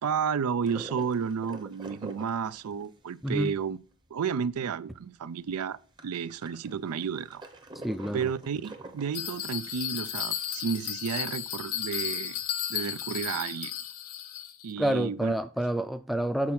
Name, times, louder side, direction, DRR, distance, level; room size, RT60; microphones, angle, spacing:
voice 1, 0.0-3.8 4.1-7.4 8.1-12.4 12.7-13.7 14.6-15.3, right 6 dB, 85° right, 0.4 m, -32 dB
sound 1, 0.7-4.7 5.0-5.1 5.3-10.7 11.0-11.1 11.3-11.5 12.0-13.3, right 2 dB, 20° right, 0.7 m, -46 dB
voice 2, 3.2-3.5 7.8-8.3 14.8-16.5, right 1 dB, ahead, 0.4 m, -28 dB
Bell, 9.1-14.7, left 10 dB, 70° left, 0.7 m, -34 dB
7.3 x 4.3 x 6.0 m
head